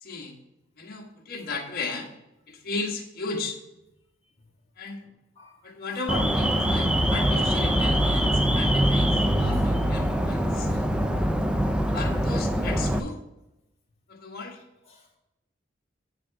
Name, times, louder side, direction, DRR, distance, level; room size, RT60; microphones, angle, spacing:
voice 1, 0.0-0.4 0.8-2.1 2.5-3.6 4.8-5.0 5.6-10.7 11.9-13.2 14.1-14.6, left 3 dB, 50° left, 1 dB, 1.3 m, -35 dB
Alarm, 6.1-13.0, equal, 5° right, 0.4 m, -23 dB
voice 2, 10.7-11.2 14.9-15.2, left 3 dB, 30° left, -2 dB, 1.9 m, -54 dB
9.7 x 3.6 x 5.8 m, 0.93 s
head